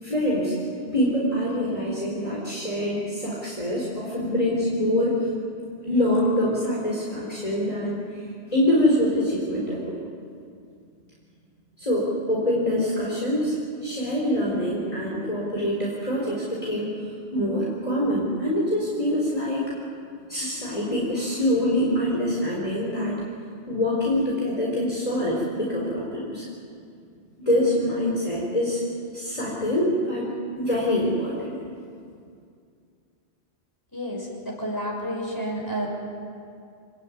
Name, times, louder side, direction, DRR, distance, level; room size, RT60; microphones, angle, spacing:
voice 1, 0.0-0.5 0.9-5.3 5.8-10.0 11.8-13.6 13.8-16.9 17.3-19.6 20.3-23.2 23.7-26.4 27.4-28.8 29.1-30.2 30.6-31.6, left 1 dB, 35° left, -5 dB, 4.4 m, -25 dB
voice 2, 33.9-35.9, equal, 20° left, -2 dB, 6.3 m, -30 dB
27.5 x 18.5 x 9.4 m, 2.4 s
omnidirectional pair, 1.1 m